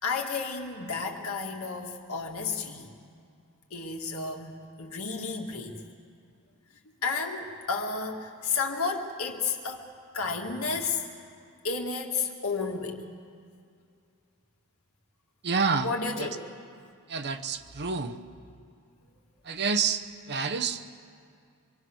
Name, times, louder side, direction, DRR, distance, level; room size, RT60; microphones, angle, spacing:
voice 1, 0.0-2.9 3.7-5.8 7.0-9.9 10.1-11.0 11.6-13.1 15.8-16.4, left 4 dB, 70° left, 2 dB, 2.2 m, -32 dB
voice 2, 15.4-16.3 17.1-18.2 19.4-20.8, right 5 dB, 50° right, 9 dB, 1.0 m, -29 dB
25.5 x 23.5 x 6.4 m, 2.3 s
head